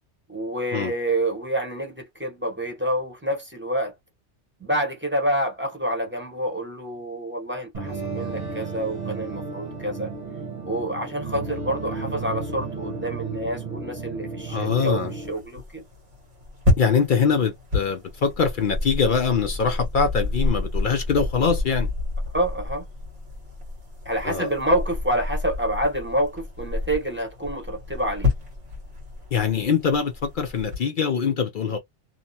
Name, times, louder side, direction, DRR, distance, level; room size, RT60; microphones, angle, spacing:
voice 1, 0.3-3.9 4.6-10.1 10.6-15.8 22.3-22.8 24.0-28.3, right 1 dB, 10° right, 0.9 m, -27 dB
sound 1, 7.7-15.3, right 4 dB, 40° right, 1.0 m, -33 dB
voice 2, 14.5-15.1 16.8-21.9 24.2-24.5 29.3-31.8, left 6 dB, 60° left, 0.6 m, -23 dB
sound 2, 14.8-30.8, left 2 dB, 85° right, 1.5 m, -30 dB
2.9 x 2.0 x 2.7 m
omnidirectional pair, 1.2 m